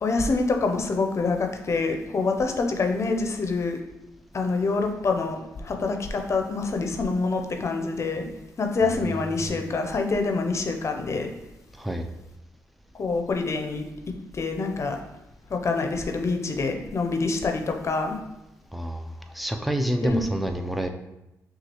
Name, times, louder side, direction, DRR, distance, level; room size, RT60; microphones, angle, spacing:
voice 1, 0.0-3.8 4.3-8.3 8.6-11.3 13.0-13.8 14.3-15.0 15.5-18.2 20.0-20.2, left 3 dB, 50° left, 4 dB, 0.6 m, -26 dB
voice 2, 8.8-9.6 11.8-12.1 18.7-20.9, right 1 dB, ahead, 5 dB, 0.5 m, -29 dB
6.0 x 2.4 x 3.0 m, 0.91 s
supercardioid pair, 55°, 6 cm